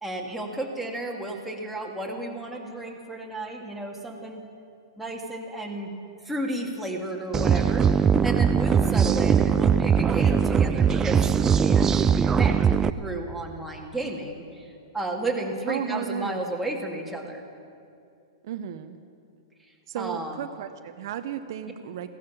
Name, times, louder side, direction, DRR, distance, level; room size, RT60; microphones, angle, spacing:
voice 1, 0.0-4.4 5.0-5.9 6.2-12.6 13.0-17.4 20.0-20.5, right 1 dB, 5° right, -1 dB, 2.1 m, -33 dB
sound 1, 7.3-12.9, right 7 dB, 20° right, 0.4 m, -20 dB
voice 2, 8.9-9.4 15.7-16.4 18.4-19.0 19.9-22.1, right 9 dB, 60° right, 9 dB, 0.7 m, -34 dB
16.5 x 11.5 x 7.1 m, 2.4 s
hypercardioid pair, 110°, 3 cm